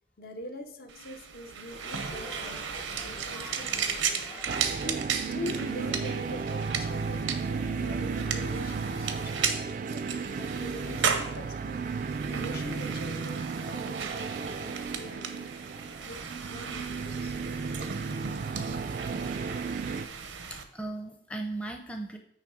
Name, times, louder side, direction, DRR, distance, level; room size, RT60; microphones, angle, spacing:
voice 1, 0.2-2.7 3.0-4.3 4.8-7.4 7.8-9.8 10.3-11.8 12.3-15.6 16.0-17.4, left 1 dB, 50° left, 6 dB, 0.6 m, -43 dB
sound 1, 0.9-20.6, right 6 dB, 90° right, 0.7 m, -36 dB
sound 2, 1.7-17.9, left 2 dB, 75° left, 1.8 m, -51 dB
sound 3, 4.5-20.1, right 5 dB, 45° right, 0.3 m, -34 dB
voice 2, 20.5-22.2, right 2 dB, 5° left, 2 dB, 0.5 m, -37 dB
8.9 x 3.1 x 4.9 m, 0.71 s
head